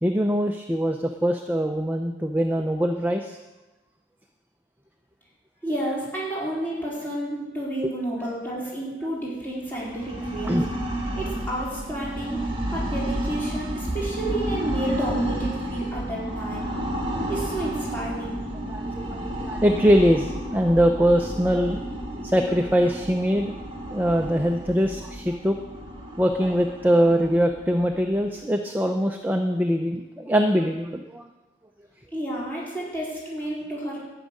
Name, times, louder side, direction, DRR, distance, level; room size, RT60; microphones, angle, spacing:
voice 1, 0.0-3.4 10.4-10.6 18.7-21.8 22.2-23.5 23.9-25.6 26.2-31.3, equal, 10° right, 4 dB, 0.5 m, -22 dB
voice 2, 5.6-10.6 11.2-12.4 12.7-16.7 17.3-18.4 32.1-34.0, right 1 dB, 10° left, -7 dB, 4.1 m, -31 dB
sound 1, 9.7-28.4, right 1 dB, 25° right, 1.4 m, -31 dB
11.5 x 6.4 x 9.4 m, 1.1 s
head